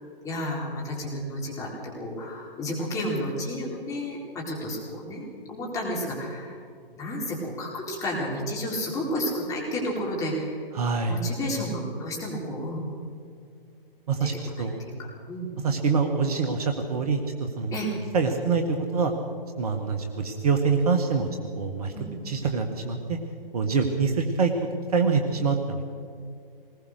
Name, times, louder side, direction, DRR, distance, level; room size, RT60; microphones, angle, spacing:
voice 1, 0.2-6.6 6.9-10.7 11.1-12.8 14.2-15.6 17.7-17.9 21.9-22.1, equal, 10° left, -4 dB, 4.0 m, -32 dB
voice 2, 10.8-11.2 14.1-14.3 14.6-14.8 15.6-17.8 18.1-19.1 19.6-21.3 21.6-21.9 22.3-23.2 23.5-24.5 24.9-25.8, right 5 dB, 40° right, 5 dB, 1.7 m, -25 dB
20.0 x 20.0 x 6.6 m, 2.2 s
figure-of-eight pair, 135°, 29 cm